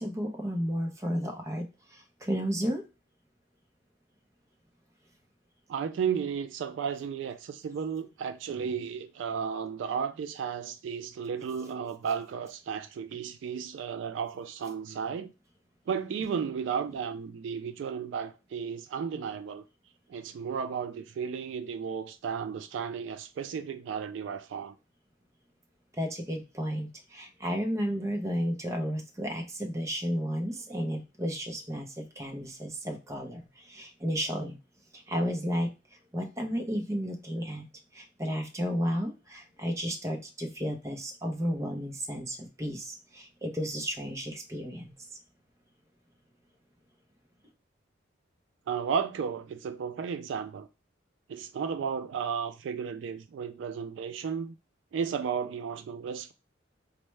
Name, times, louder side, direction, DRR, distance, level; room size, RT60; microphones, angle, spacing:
voice 1, 0.0-1.6 1.9-2.8 26.0-33.4 33.7-34.6 34.9-35.7 36.1-37.7 37.9-44.9, equal, 15° right, 0.6 m, -32 dB
voice 2, 5.7-15.3 15.9-19.6 20.1-24.8 48.7-50.7 51.3-54.5 54.9-56.3, right 6 dB, 75° right, 0.3 m, -34 dB
4.4 x 2.1 x 3.1 m
head